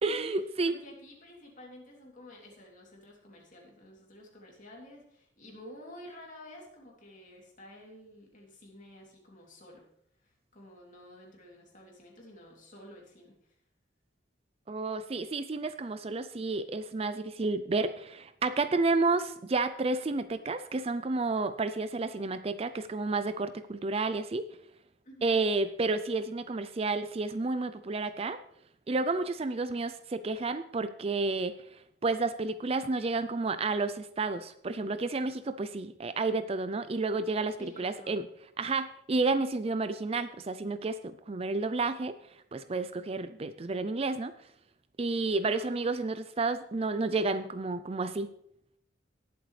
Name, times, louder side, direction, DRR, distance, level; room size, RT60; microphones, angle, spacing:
voice 1, 0.0-0.7 14.7-24.4 25.2-28.4 28.9-31.6 32.0-38.2 38.6-42.1 42.5-44.3 45.0-48.3, right 3 dB, 30° right, 12 dB, 0.4 m, -31 dB
voice 2, 0.7-9.9 10.2-13.3 25.0-25.4 37.6-38.2 45.4-45.9, left 1 dB, 40° left, -1 dB, 3.0 m, -51 dB
18.5 x 7.8 x 3.3 m, 0.72 s
head